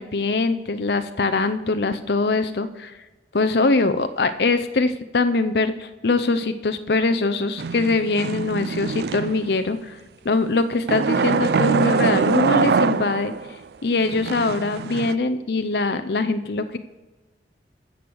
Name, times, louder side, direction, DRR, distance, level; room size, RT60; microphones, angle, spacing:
voice 1, 0.0-2.9 3.3-10.0 10.2-13.3 13.8-16.8, left 3 dB, 65° left, 10 dB, 0.7 m, -22 dB
sound 1, 7.6-9.6 10.9-13.5 14.0-15.1, right 5 dB, 65° right, 0.4 m, -23 dB
14.0 x 6.3 x 7.0 m, 1.2 s
head